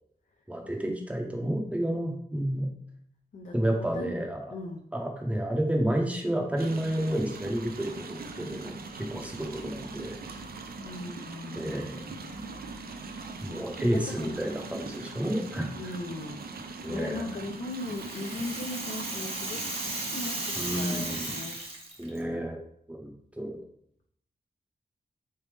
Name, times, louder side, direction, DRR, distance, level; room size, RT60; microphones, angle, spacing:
voice 1, 0.5-2.7 3.5-4.5 4.9-10.4 11.5-12.1 13.4-15.7 16.8-17.2 20.6-21.3 22.0-22.6 22.9-23.6, right 1 dB, 10° right, 1 dB, 0.6 m, -31 dB
voice 2, 3.3-4.2 4.5-4.8 10.8-12.3 13.5-14.4 15.3-15.5 15.7-19.7 20.1-21.6, left 2 dB, 50° left, 2 dB, 0.4 m, -39 dB
sound 1, 6.6-21.5, right 3 dB, 70° right, 0.4 m, -41 dB
Rattle (instrument), 17.4-22.2, right 2 dB, 35° right, 0.8 m, -35 dB
4.0 x 3.3 x 3.2 m, 0.68 s
wide cardioid pair, 145°, 16 cm